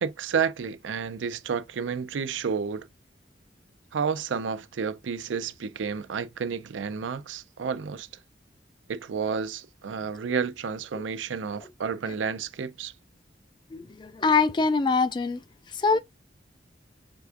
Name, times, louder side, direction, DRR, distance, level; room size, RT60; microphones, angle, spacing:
voice 1, 0.0-2.9 3.9-8.1 8.9-12.9, right 6 dB, 90° right, 0.5 m, -31 dB
voice 2, 13.7-15.4 15.7-16.0, left 4 dB, 25° left, 0.3 m, -24 dB
4.7 x 3.4 x 2.4 m
head